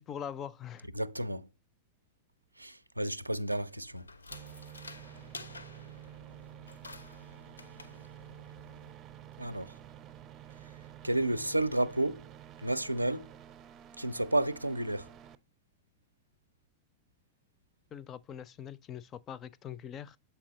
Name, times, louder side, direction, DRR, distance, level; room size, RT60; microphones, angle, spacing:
voice 1, 0.0-0.9 17.9-20.2, left 9 dB, 30° left, 0.4 m, -42 dB
voice 2, 0.9-1.5 2.6-4.1 9.4-9.8 11.0-12.3 12.6-13.3 14.0-15.1, right 1 dB, 85° right, 0.4 m, -31 dB
sound 1, 3.3-8.9, left 3 dB, 80° left, 0.6 m, -51 dB
sound 2, 4.3-15.3, right 11 dB, 30° right, 0.5 m, -50 dB
7.3 x 4.6 x 4.0 m
figure-of-eight pair, 90°, 0 cm